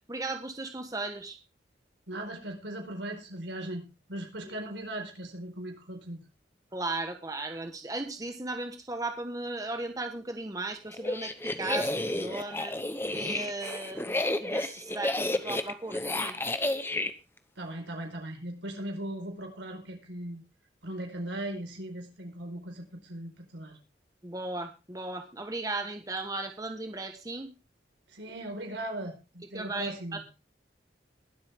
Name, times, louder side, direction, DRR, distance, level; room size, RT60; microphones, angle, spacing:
voice 1, 0.1-1.4 4.4-4.5 6.7-12.7 13.1-16.4 24.2-27.5 29.5-30.3, right 2 dB, 20° right, 6 dB, 1.3 m, -36 dB
voice 2, 2.1-6.2 17.6-20.4 20.8-23.8 28.1-30.2, right 1 dB, 85° right, 3 dB, 4.5 m, -38 dB
sound 1, 10.9-17.1, left 1 dB, 10° left, 0.9 m, -31 dB
21.5 x 8.1 x 3.6 m, 0.28 s
head